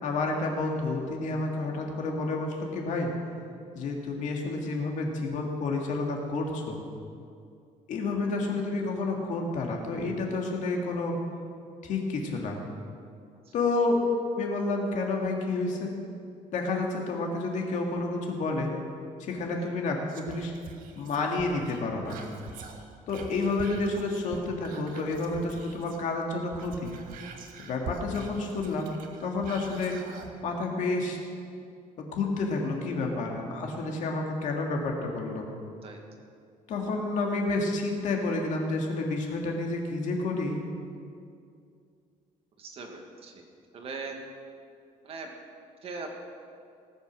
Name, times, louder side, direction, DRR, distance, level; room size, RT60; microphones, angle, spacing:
voice 1, 0.0-3.1 3.7-6.8 7.9-11.2 11.8-12.6 13.5-14.0 14.3-15.9 16.5-18.7 19.2-20.5 21.0-22.2 23.1-26.9 27.6-28.9 29.2-30.0 30.4-31.2 32.0-35.5 36.7-40.6, left 3 dB, 60° left, 1 dB, 2.1 m, -30 dB
Whispering, 20.1-26.1 26.4-30.3 30.8-30.9, right 4 dB, 75° right, 1.4 m, -45 dB
voice 2, 42.6-43.3 43.7-44.2 45.0-45.3 45.8-46.1, right 4 dB, 45° right, 2 dB, 1.6 m, -40 dB
18.5 x 8.4 x 6.2 m, 2.4 s
cardioid pair, 180°, 14 cm